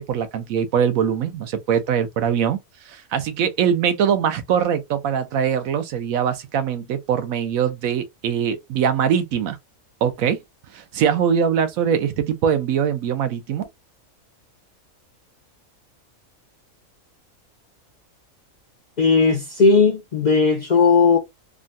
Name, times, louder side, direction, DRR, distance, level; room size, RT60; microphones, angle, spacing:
voice 1, 0.0-2.6 2.9-9.6 10.0-10.4 10.7-13.7, right 8 dB, 80° right, 1.1 m, -22 dB
voice 2, 19.0-21.2, left 4 dB, 60° left, 0.4 m, -16 dB
3.7 x 2.1 x 2.5 m
omnidirectional pair, 1.4 m